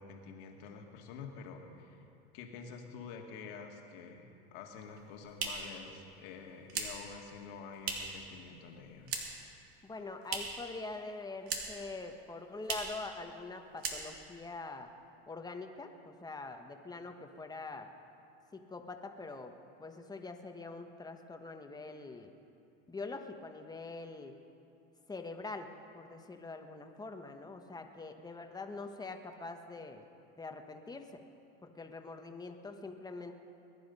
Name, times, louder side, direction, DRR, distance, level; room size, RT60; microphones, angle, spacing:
voice 1, 0.0-9.2, left 5 dB, 75° left, 3 dB, 2.2 m, -48 dB
sound 1, 4.8-8.3 8.5-9.5 9.8-10.7 11.0-11.9 12.2-12.3 12.6-13.0 13.4-13.5 13.8-14.4, right 5 dB, 50° right, 2.7 m, -40 dB
voice 2, 9.8-14.9 15.3-17.9 18.5-19.5 19.8-22.3 22.9-24.3 25.1-25.7 25.9-30.0 30.4-31.2 31.6-33.3, left 3 dB, 15° left, 5 dB, 1.3 m, -44 dB
21.0 x 11.5 x 5.5 m, 2.7 s
supercardioid pair, 115°, 29 cm